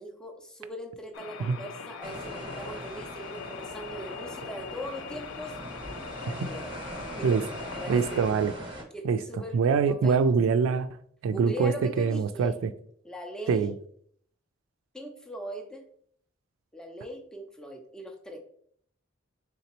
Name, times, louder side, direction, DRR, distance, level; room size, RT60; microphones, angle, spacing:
voice 1, 0.0-5.6 6.4-6.8 7.1-8.2 8.9-10.3 11.3-12.6 13.0-13.8 14.9-15.9 16.7-18.4, equal, 5° left, 3 dB, 0.5 m, -40 dB
sound 1, 1.1-8.3, left 5 dB, 80° left, 0.4 m, -41 dB
sound 2, 2.0-8.8, right 1 dB, 25° right, 0.8 m, -41 dB
voice 2, 7.9-8.5 9.0-9.2 9.5-10.9 11.2-12.7 13.5-13.7, right 5 dB, 85° right, 12 dB, 0.3 m, -24 dB
4.0 x 3.6 x 2.9 m, 0.64 s
head